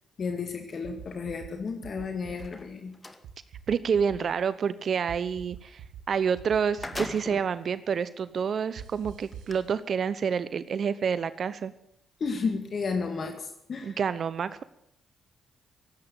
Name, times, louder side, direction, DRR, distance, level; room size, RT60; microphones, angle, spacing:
voice 1, 0.2-2.9 12.2-14.0, left 5 dB, 55° left, 6 dB, 2.1 m, -32 dB
sound 1, 0.8-1.5 1.8-2.5 3.2-4.2 5.1-6.0 6.3-7.0 8.8-9.6, right 9 dB, 80° right, 1.3 m, -43 dB
sound 2, 2.3-3.2 6.1-6.2 6.5-7.6 8.3-8.4 9.3-9.5, left 2 dB, 20° left, 2.0 m, -39 dB
voice 2, 3.7-11.7 13.8-14.6, right 6 dB, 60° right, 15 dB, 0.8 m, -28 dB
17.0 x 8.7 x 9.1 m, 0.76 s
supercardioid pair, 55°, 0 cm